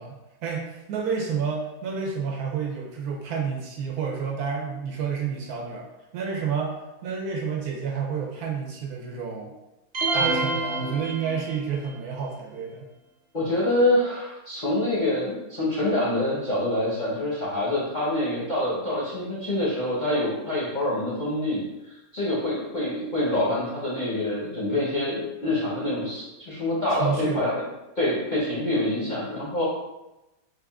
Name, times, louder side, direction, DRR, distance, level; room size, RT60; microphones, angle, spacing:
voice 1, 0.0-5.9 6.1-9.5 10.1-12.9 26.9-27.4, right 6 dB, 70° right, -1 dB, 1.0 m, -30 dB
sound 1, 9.9-11.8, right 3 dB, 45° right, 1.0 m, -27 dB
voice 2, 13.3-27.7 28.0-29.6, left 1 dB, 40° left, -8 dB, 0.6 m, -26 dB
3.5 x 2.4 x 3.5 m, 0.97 s
omnidirectional pair, 1.8 m